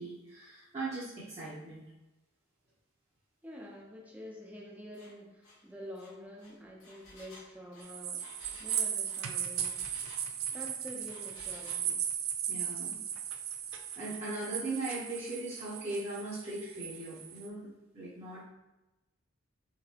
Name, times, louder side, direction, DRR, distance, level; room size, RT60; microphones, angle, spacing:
voice 1, 0.0-1.8 12.5-13.0 14.0-17.7 17.9-18.4, right 2 dB, 30° right, -11 dB, 0.9 m, -39 dB
voice 2, 3.4-8.3 8.6-9.8 10.5-12.1, equal, 10° right, -2 dB, 0.6 m, -47 dB
Engine, 4.9-5.1 5.4-5.6 5.9-10.7 11.1-11.9, left 2 dB, 80° left, 1.1 m, -54 dB
sound 1, 7.8-17.5, right 9 dB, 75° right, 0.4 m, -37 dB
3.9 x 3.4 x 2.9 m, 1.0 s
head